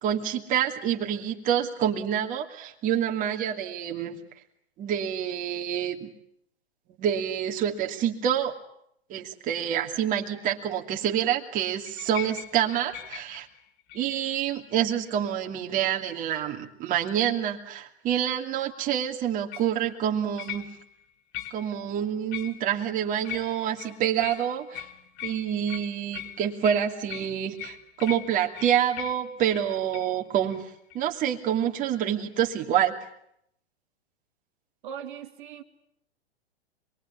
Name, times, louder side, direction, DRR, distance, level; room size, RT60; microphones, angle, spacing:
voice 1, 0.0-4.2 4.8-6.1 7.0-8.5 9.1-13.5 13.9-20.7 21.5-24.9 25.2-30.6 30.9-32.9, right 9 dB, 25° right, 2 dB, 2.7 m, -27 dB
sound 1, 11.8-14.3 14.9-15.3 19.5-19.8 20.4-21.0 21.3-21.8 22.3-22.9 23.2-30.1 30.5-30.6 30.9-31.0, left 12 dB, 35° left, 2.6 m, -41 dB
voice 2, 34.8-35.6, right 8 dB, 50° right, 5 dB, 2.5 m, -39 dB
26.5 x 22.5 x 9.8 m, 0.75 s
figure-of-eight pair, 110°, 33 cm